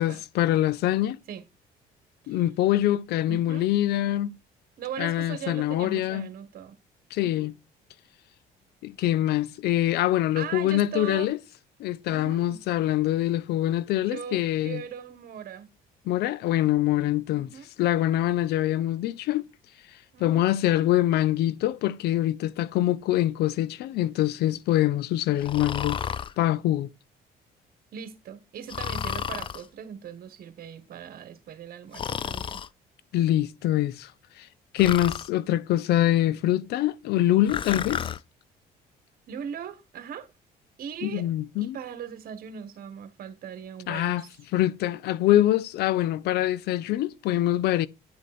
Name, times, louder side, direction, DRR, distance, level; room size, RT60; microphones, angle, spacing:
voice 1, 0.0-1.2 2.3-4.4 5.0-6.3 7.1-7.5 8.8-11.4 11.8-14.8 16.1-17.5 17.8-19.5 20.2-26.0 26.4-26.9 33.1-34.1 34.4-34.5 34.7-38.0 41.0-41.8 43.9-44.2 44.5-47.9, left 13 dB, 75° left, 0.5 m, -24 dB
voice 2, 3.3-3.7 4.8-6.8 7.2-7.5 10.4-11.3 12.1-12.6 14.1-15.7 17.3-17.7 20.1-20.5 27.9-32.6 39.3-40.3 40.8-41.3 41.6-44.3, right 8 dB, 60° right, 1.5 m, -39 dB
Breathing, 25.4-26.3 28.7-29.6 31.9-32.7 34.8-35.3 37.5-38.2, left 7 dB, 30° left, 0.4 m, -32 dB
10.0 x 5.2 x 4.3 m
cardioid pair, 110°, 17 cm